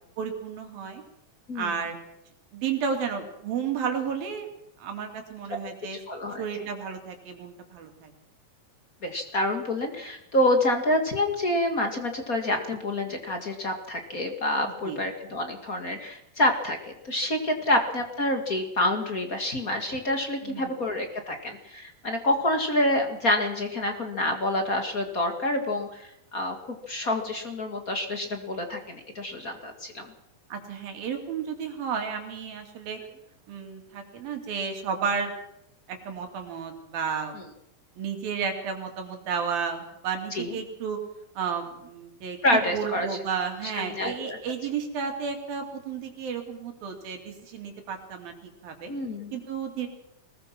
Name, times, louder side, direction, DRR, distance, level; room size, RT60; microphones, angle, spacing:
voice 1, 0.2-1.0 1.6-2.0 2.5-4.5 4.8-6.0 6.4-8.1 14.7-15.0 20.4-20.8 30.5-33.0 33.5-35.3 35.9-37.3 38.0-41.0 41.4-48.9 49.3-49.9, right 6 dB, 80° right, 5 dB, 4.5 m, -32 dB
voice 2, 6.1-6.4 9.0-16.8 17.0-30.1 40.3-40.6 42.4-43.1 43.7-44.4 48.9-49.3, left 1 dB, 30° left, 5 dB, 1.7 m, -27 dB
22.0 x 20.0 x 6.0 m, 0.81 s
omnidirectional pair, 4.1 m